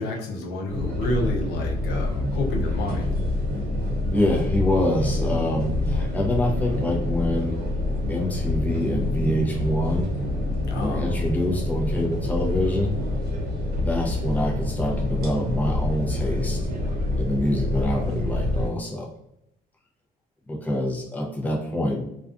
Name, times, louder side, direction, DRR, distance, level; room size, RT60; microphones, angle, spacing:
voice 1, 0.0-3.2 10.7-11.0, left 1 dB, 80° left, 1 dB, 0.6 m, -29 dB
sound 1, 0.7-18.7, left 1 dB, 65° right, 0.8 m, -26 dB
voice 2, 4.1-7.6 8.1-10.1 10.8-13.0 13.7-16.6 17.2-19.1 20.5-22.0, left 1 dB, 10° left, -1 dB, 0.5 m, -26 dB
2.4 x 2.3 x 2.4 m, 0.80 s
cardioid pair, 110°, 17 cm